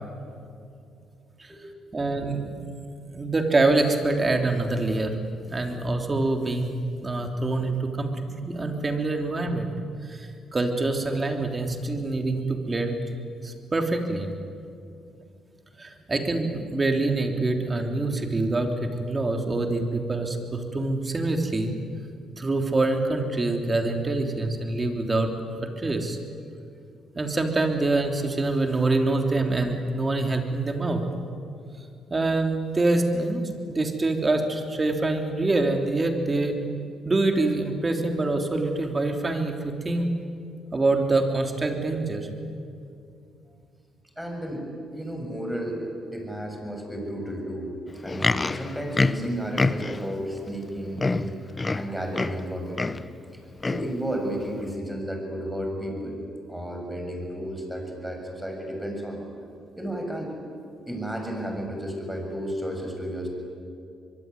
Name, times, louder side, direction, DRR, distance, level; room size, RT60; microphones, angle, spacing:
voice 1, 1.9-2.6 3.1-5.2 5.5-6.7 7.0-8.1 8.4-9.7 10.1-13.2 13.4-14.3 15.8-21.7 22.4-25.3 25.8-26.2 27.1-31.0 32.1-33.4 33.7-36.6 37.0-40.1 40.7-42.3, right 2 dB, 25° right, 4 dB, 3.3 m, -25 dB
voice 2, 44.2-44.7 44.9-45.8 46.1-47.7 48.0-53.0 53.6-56.2 56.5-59.2 59.8-60.3 60.9-63.3, right 1 dB, 5° right, 2 dB, 7.2 m, -32 dB
Livestock farm animals working animals, 47.9-50.1 50.7-50.8 51.0-52.5 52.7-53.1 53.6-53.9 54.6-54.7, left 3 dB, 25° left, 0.8 m, -26 dB
24.0 x 23.0 x 9.8 m, 2.5 s
cardioid pair, 90°, 0 cm